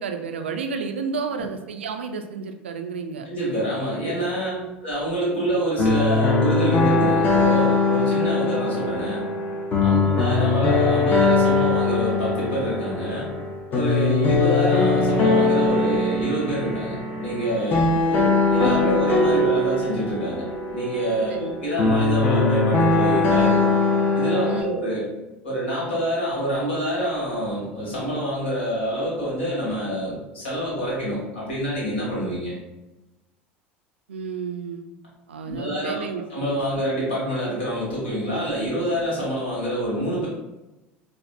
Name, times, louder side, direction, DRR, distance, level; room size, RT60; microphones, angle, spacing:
voice 1, 0.0-3.3 4.5-4.8 9.9-10.1 17.7-18.0 21.3-21.6 24.4-24.8 34.1-34.9 35.3-36.2, right 5 dB, 70° right, 5 dB, 0.3 m, -31 dB
voice 2, 3.2-4.5 4.8-9.3 9.8-13.3 13.7-23.6 24.1-25.1 25.4-32.5 35.4-40.3, right 1 dB, 65° left, -5 dB, 1.5 m, -26 dB
sound 1, 5.8-24.6, left 3 dB, 30° left, 0.7 m, -21 dB
4.3 x 2.4 x 2.3 m, 1.0 s
figure-of-eight pair, 70°, 6 cm